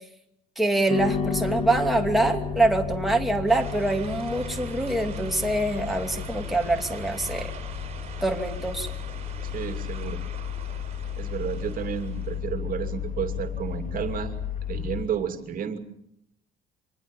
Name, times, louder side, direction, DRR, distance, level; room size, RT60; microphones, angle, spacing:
voice 1, 0.6-7.5 8.2-8.9, right 2 dB, ahead, 2 dB, 2.7 m, -25 dB
sound 1, 0.9-9.4, left 5 dB, 30° left, 2.2 m, -35 dB
sound 2, 1.0-15.1, left 8 dB, 45° left, 4.1 m, -35 dB
sound 3, 3.5-12.4, right 7 dB, 40° right, 5.5 m, -44 dB
voice 2, 9.5-10.2 11.2-14.3 14.7-15.8, right 8 dB, 55° right, 7 dB, 2.6 m, -31 dB
25.5 x 20.0 x 7.2 m, 0.75 s
cardioid pair, 110°, 17 cm